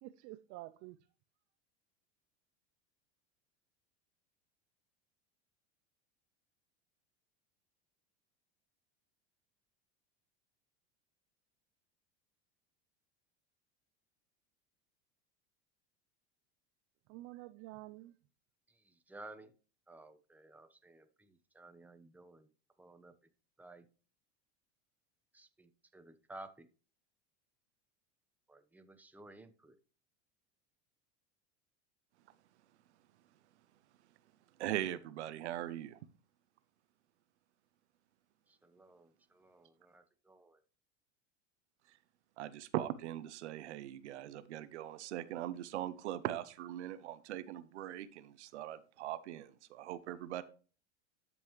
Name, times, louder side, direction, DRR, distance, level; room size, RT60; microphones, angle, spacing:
voice 1, 0.0-1.0 17.1-18.1, right 17 dB, 50° right, 0.6 m, -49 dB
voice 2, 18.9-19.5 19.9-22.5 22.8-23.1 23.6-23.8 25.3-26.7 28.5-29.8 38.6-40.6, right 2 dB, 5° right, 0.9 m, -55 dB
voice 3, 34.6-36.0 42.4-50.4, right 12 dB, 85° right, 0.8 m, -40 dB
13.0 x 5.4 x 3.1 m
supercardioid pair, 105°, 34 cm